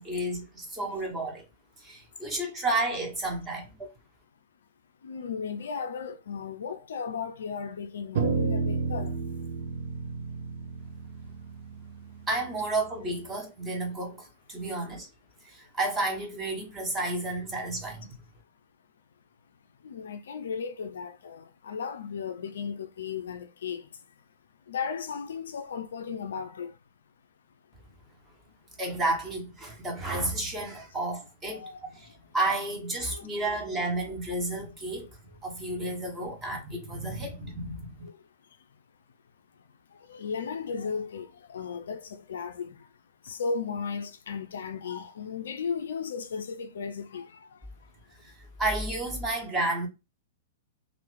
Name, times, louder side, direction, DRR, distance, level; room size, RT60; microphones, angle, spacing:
voice 1, 0.0-1.5 1.8-3.9 12.3-15.1 15.4-18.1 28.8-38.0 48.2-49.9, right 2 dB, 15° right, 1.1 m, -31 dB
voice 2, 5.0-9.2 14.6-14.7 19.8-24.2 24.7-26.8 28.5-28.6 31.5-32.2 33.0-33.3 37.1-37.2 38.0-38.3 39.9-42.9 43.2-47.9, left 6 dB, 60° left, 0.4 m, -36 dB
sound 1, 8.1-12.7, right 4 dB, 50° right, 0.5 m, -31 dB
2.9 x 2.5 x 3.2 m
figure-of-eight pair, 100°, 0 cm